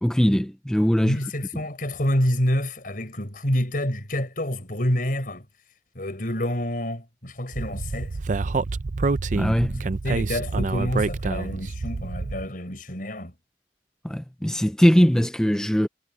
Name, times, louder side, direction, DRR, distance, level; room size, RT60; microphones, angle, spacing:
voice 1, 0.0-1.2 9.3-9.8 14.0-15.9, equal, 5° left, 0.4 m, -21 dB
voice 2, 1.0-5.4 5.9-8.2 9.8-13.3, left 1 dB, 50° left, 6.0 m, -27 dB
Speech, 7.5-12.5, right 3 dB, 45° right, 0.5 m, -27 dB
head